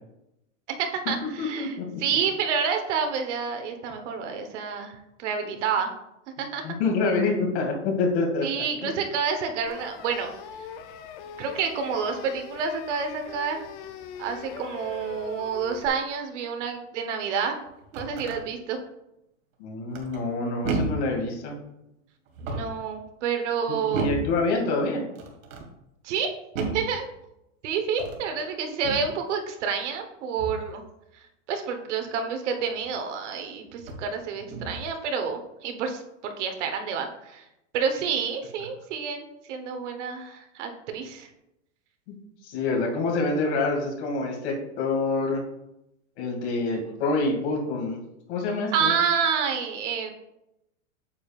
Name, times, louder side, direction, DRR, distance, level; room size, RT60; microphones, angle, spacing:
voice 1, 0.8-5.9 6.4-6.6 8.4-10.3 11.4-13.6 14.2-17.7 17.9-18.8 22.4-24.1 26.0-26.3 26.7-27.1 27.6-30.8 31.5-37.4 37.7-41.3 48.7-50.1, right 6 dB, 60° right, 5 dB, 1.2 m, -29 dB
voice 2, 1.4-1.8 6.4-8.6 19.6-21.6 23.9-25.0 42.1-42.2 42.4-45.4 46.2-48.0 48.3-48.9, left 3 dB, 55° left, 0 dB, 2.5 m, -26 dB
sound 1, 9.7-15.9, left 8 dB, 40° left, 0.6 m, -41 dB
sound 2, 17.6-18.4 19.9-20.3 20.6-21.1 22.3-22.8 23.9-24.4 25.1-25.7 26.5-26.9 27.9-28.3 28.8-29.1 30.4-30.7 32.8-32.9 33.8-34.1 34.5-34.9, right 3 dB, 80° right, 2.0 m, -32 dB
8.6 x 7.0 x 2.5 m, 0.87 s
supercardioid pair, 150°, 39 cm